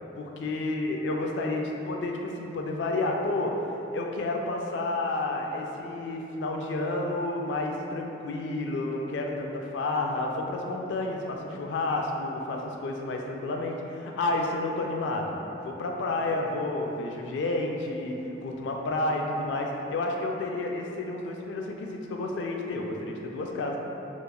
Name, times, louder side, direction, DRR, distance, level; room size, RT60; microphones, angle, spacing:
voice 1, 0.2-3.5 3.9-18.2 18.4-23.8, left 2 dB, 80° left, 1 dB, 0.3 m, -30 dB
2.9 x 2.3 x 2.2 m, 3.0 s
head